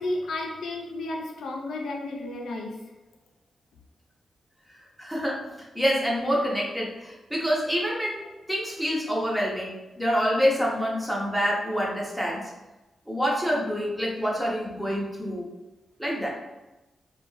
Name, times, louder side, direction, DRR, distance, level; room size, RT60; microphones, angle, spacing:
voice 1, 0.0-2.8, left 2 dB, 90° left, 0 dB, 0.4 m, -32 dB
voice 2, 5.0-5.4 5.7-8.2 8.5-12.5 13.1-15.4 16.0-16.3, equal, 5° right, -4 dB, 0.5 m, -26 dB
2.5 x 2.2 x 3.1 m, 1.0 s
wide cardioid pair, 165°, 0 cm